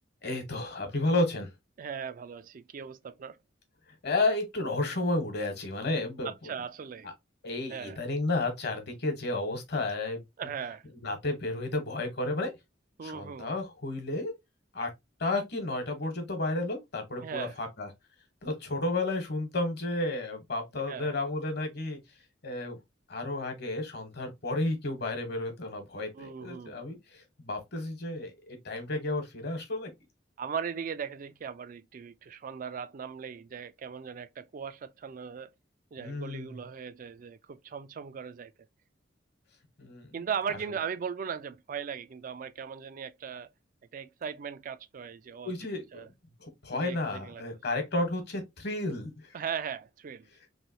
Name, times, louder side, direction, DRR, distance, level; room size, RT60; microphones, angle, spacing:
voice 1, 0.2-1.5 4.0-6.5 7.0-7.1 7.4-10.2 11.0-12.5 13.0-14.3 14.7-14.9 15.2-17.9 18.4-22.0 22.4-22.8 23.1-29.9 36.0-36.5 39.8-40.1 45.4-46.1 46.4-49.4, left 2 dB, 60° left, 1.1 m, -32 dB
voice 2, 1.8-3.4 6.2-7.1 7.7-8.0 10.4-10.8 13.0-13.5 17.2-17.6 20.9-21.1 26.1-26.8 30.4-35.5 35.9-38.5 40.1-43.5 43.9-45.5 45.9-46.1 46.7-47.4 49.3-50.3, right 7 dB, 45° right, 0.3 m, -38 dB
3.2 x 2.7 x 2.7 m
head